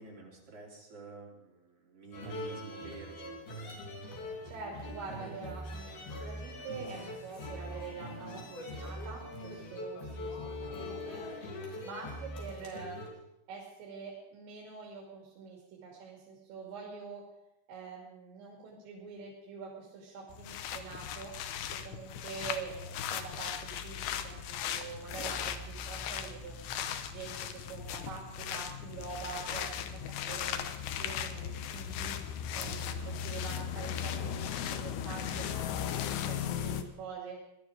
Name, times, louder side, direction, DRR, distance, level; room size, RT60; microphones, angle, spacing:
voice 1, 0.0-3.9, right 3 dB, 35° right, -3 dB, 3.5 m, -50 dB
sound 1, 2.1-13.1, left 1 dB, 55° left, 4.6 m, -42 dB
voice 2, 4.4-11.5 11.8-13.0 13.5-17.2 17.7-21.3 21.8-26.6 27.1-30.7 31.0-32.2 32.5-37.4, right 5 dB, 70° right, -4 dB, 4.7 m, -45 dB
sound 2, 20.3-36.8, left 9 dB, 75° left, 2.9 m, -37 dB
19.5 x 12.0 x 5.1 m, 0.90 s
omnidirectional pair, 5.6 m